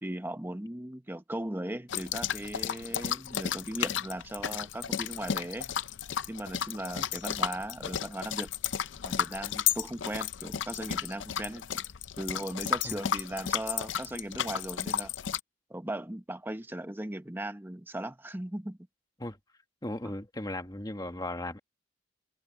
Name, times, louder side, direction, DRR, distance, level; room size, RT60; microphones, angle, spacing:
voice 1, 0.0-5.7 6.3-8.5 9.0-11.8 12.2-15.1 15.7-18.8 20.0-20.1, right 1 dB, 10° right, 0.9 m, -38 dB
sound 1, 1.9-15.4, left 9 dB, 65° left, 0.5 m, -33 dB
voice 2, 19.8-21.6, left 1 dB, 20° left, 1.6 m, -37 dB
head